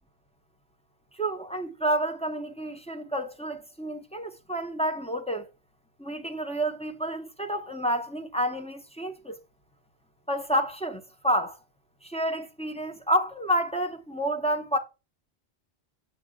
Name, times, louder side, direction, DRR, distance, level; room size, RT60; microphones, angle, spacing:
voice 1, 1.1-5.5 6.0-9.4 10.3-11.6 12.0-14.8, right 1 dB, 5° left, 1.0 m, -29 dB
9.3 x 7.4 x 3.7 m
omnidirectional pair, 1.1 m